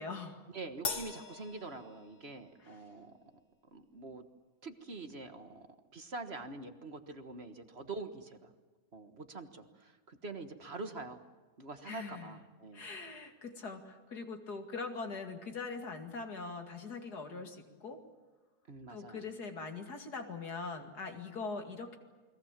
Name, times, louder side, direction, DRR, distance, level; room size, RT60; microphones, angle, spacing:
voice 1, 0.0-0.4 2.6-2.8 11.9-12.4 12.7-18.0 18.9-22.0, left 4 dB, 80° left, 5 dB, 2.9 m, -42 dB
voice 2, 0.5-3.2 3.7-4.2 4.6-5.7 5.9-8.5 8.9-11.2 11.6-12.8 18.7-19.3, right 3 dB, 40° right, 7 dB, 1.7 m, -45 dB
Crash cymbal, 0.8-2.5, left 4 dB, 30° left, 1.3 m, -41 dB
29.0 x 22.0 x 7.5 m, 1.3 s
omnidirectional pair, 1.7 m